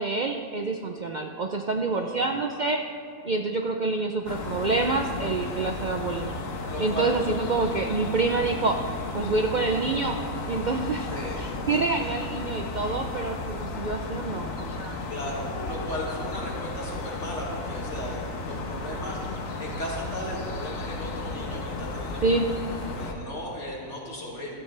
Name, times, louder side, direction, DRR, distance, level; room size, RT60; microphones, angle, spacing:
voice 1, 0.0-2.8 3.2-6.3 6.8-8.8 9.1-10.2 10.5-11.1 11.4-15.0 22.2-22.5, right 3 dB, 50° right, 3 dB, 0.5 m, -27 dB
voice 2, 1.9-2.3 5.1-5.5 6.7-7.2 11.1-11.4 15.1-24.5, left 1 dB, 60° left, -4 dB, 2.7 m, -36 dB
sound 1, 4.3-23.1, left 2 dB, 85° left, 1.4 m, -34 dB
15.0 x 13.0 x 3.3 m, 2.3 s
omnidirectional pair, 1.4 m